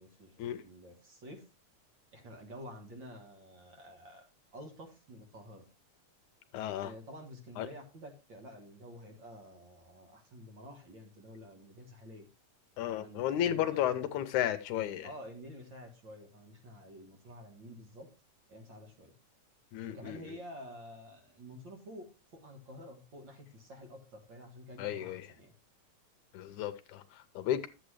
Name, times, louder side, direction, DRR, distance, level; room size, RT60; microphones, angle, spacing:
voice 1, 0.0-1.5 2.1-5.7 6.8-12.3 13.0-14.1 15.0-18.1 18.5-19.1 19.9-25.5, equal, 45° right, 1.8 m, -50 dB
voice 2, 6.5-6.9 7.6-7.7 12.8-15.1 19.7-20.4 24.8-25.3 26.3-27.7, left 11 dB, 80° left, 2.0 m, -33 dB
11.0 x 8.2 x 3.2 m
omnidirectional pair, 3.5 m